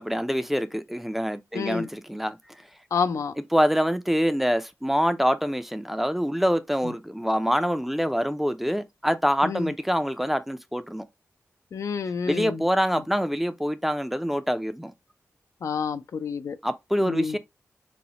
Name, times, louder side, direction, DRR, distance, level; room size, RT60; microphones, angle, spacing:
voice 1, 0.0-2.4 3.5-11.0 12.3-14.9 16.6-17.4, equal, 5° right, 0.4 m, -25 dB
voice 2, 1.5-1.9 2.9-3.3 9.4-9.7 11.7-12.6 15.6-16.6 17.0-17.4, left 6 dB, 75° left, 0.3 m, -29 dB
4.1 x 2.0 x 2.8 m
wide cardioid pair, 80°, 5 cm